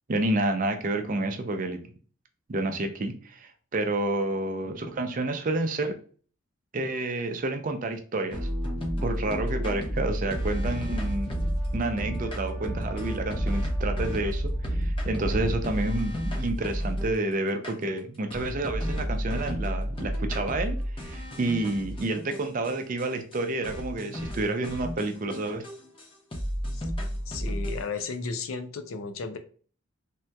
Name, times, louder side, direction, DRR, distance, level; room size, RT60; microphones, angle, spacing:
voice 1, 0.1-1.8 2.5-6.0 6.7-8.5 9.0-11.4 11.7-25.6, right 2 dB, 40° right, 6 dB, 0.4 m, -29 dB
sound 1, 8.3-17.2 17.6-17.7 18.3-22.7 23.0-23.1 23.3-23.4 23.6-26.0 26.3-28.0, equal, 25° left, 0.6 m, -31 dB
Brass instrument, 10.5-14.7, left 1 dB, ahead, 1.0 m, -50 dB
voice 2, 27.3-29.4, left 4 dB, 80° left, 8 dB, 0.5 m, -34 dB
3.4 x 2.8 x 2.2 m, 0.42 s
head